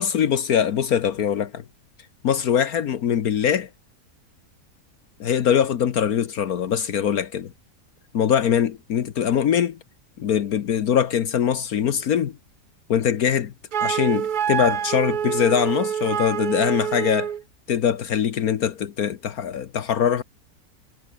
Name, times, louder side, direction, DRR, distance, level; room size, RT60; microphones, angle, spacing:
voice 1, 0.0-1.6 2.2-3.7 5.2-7.5 8.1-9.8 10.2-12.4 12.9-13.5 13.8-17.3 17.7-20.2, left 8 dB, 65° left, 1.5 m, -22 dB
Wind instrument woodwind instrument, 13.7-17.4, right 8 dB, 70° right, 0.4 m, -26 dB
omnidirectional pair, 1.7 m